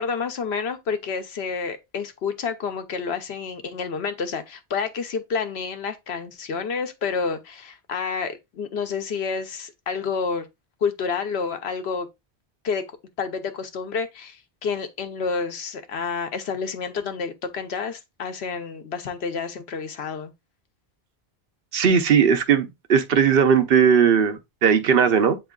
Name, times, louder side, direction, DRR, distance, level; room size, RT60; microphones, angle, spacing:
voice 1, 0.0-10.5 10.8-12.1 12.6-12.9 13.2-20.3, left 5 dB, 80° left, 1.1 m, -29 dB
voice 2, 21.7-25.4, right 7 dB, 65° right, 0.8 m, -18 dB
7.9 x 3.0 x 2.3 m
omnidirectional pair, 1.0 m